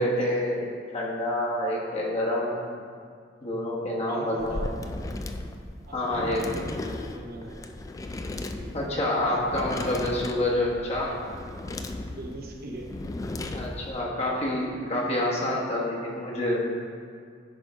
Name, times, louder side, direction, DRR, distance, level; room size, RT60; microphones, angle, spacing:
voice 1, 0.0-2.6 3.4-4.7 5.9-6.5 8.7-11.2 13.5-16.7, left 1 dB, 35° left, -3 dB, 1.2 m, -27 dB
voice 2, 4.1-4.7 5.9-6.8 7.1-7.7 8.6-8.9 11.7-11.8 12.1-13.0 13.5-13.6 14.0-14.1, right 1 dB, 50° right, 0 dB, 0.9 m, -40 dB
sound 1, 4.4-14.0, left 2 dB, 20° left, 0.3 m, -36 dB
9.7 x 3.7 x 5.0 m, 2.2 s
head